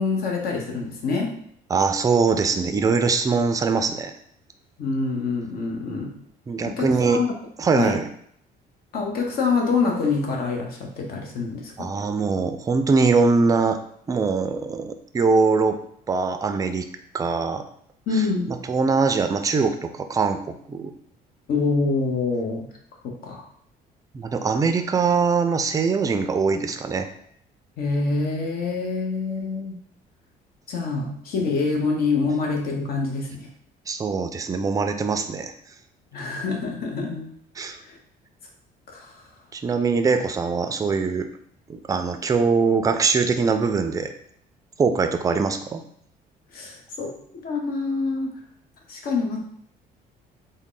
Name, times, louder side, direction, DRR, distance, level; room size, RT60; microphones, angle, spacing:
voice 1, 0.0-1.4 4.8-6.1 6.6-7.3 7.7-8.0 8.9-11.9 18.1-18.5 21.5-22.7 23.2-23.5 27.8-29.8 30.7-33.5 36.1-37.3 37.8-38.0 38.9-39.3 46.5-47.2 47.4-48.4 48.9-49.4, left 4 dB, 65° left, 1 dB, 0.9 m, -26 dB
voice 2, 1.7-4.1 6.5-7.2 7.6-8.0 11.8-13.8 14.1-15.8 16.1-16.9 17.1-17.6 18.7-20.4 20.7-20.9 24.1-27.1 33.9-35.5 37.6-37.8 39.5-41.3 41.7-44.1 44.8-45.8, right 4 dB, 20° right, 7 dB, 0.3 m, -22 dB
3.6 x 2.1 x 3.8 m, 0.67 s
cardioid pair, 110°, 17 cm